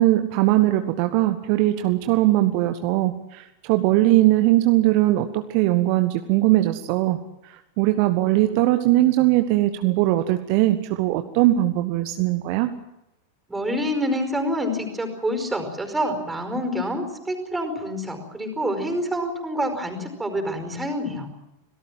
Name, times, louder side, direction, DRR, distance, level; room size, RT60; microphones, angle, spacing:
voice 1, 0.0-12.7, right 16 dB, 45° right, 8 dB, 1.2 m, -20 dB
voice 2, 13.5-21.3, equal, 10° right, 6 dB, 5.0 m, -27 dB
26.0 x 18.0 x 7.5 m, 0.88 s
figure-of-eight pair, 90°, 0 cm